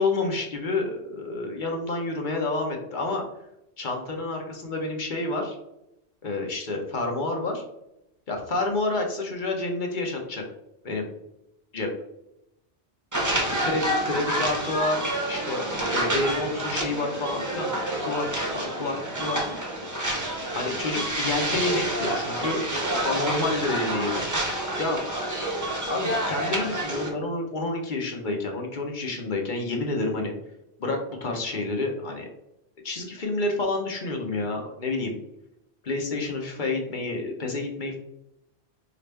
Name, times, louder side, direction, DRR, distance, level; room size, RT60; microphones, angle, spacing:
voice 1, 0.0-3.2 3.8-5.6 6.2-7.6 8.3-10.4 10.8-11.1 11.7-11.9 13.6-17.7 18.1-19.4 20.1-22.6 23.0-24.3 24.8-25.0 25.9-30.3 30.8-32.3 32.8-35.2 35.8-38.0, left 2 dB, 50° left, 2 dB, 0.9 m, -29 dB
sound 1, 13.1-27.1, right 1 dB, 20° right, 0.6 m, -28 dB
4.7 x 2.5 x 3.3 m, 0.83 s
omnidirectional pair, 1.1 m